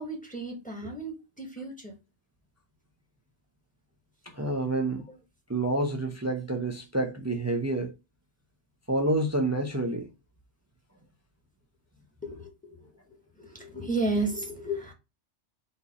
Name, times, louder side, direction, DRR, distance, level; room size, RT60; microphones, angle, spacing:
voice 1, 0.0-2.0 12.2-12.8 13.4-14.9, right 2 dB, 5° left, 1.2 m, -33 dB
voice 2, 4.2-5.0 5.5-7.9 8.9-10.1, right 2 dB, 25° right, 0.3 m, -28 dB
4.3 x 2.9 x 4.0 m
omnidirectional pair, 1.2 m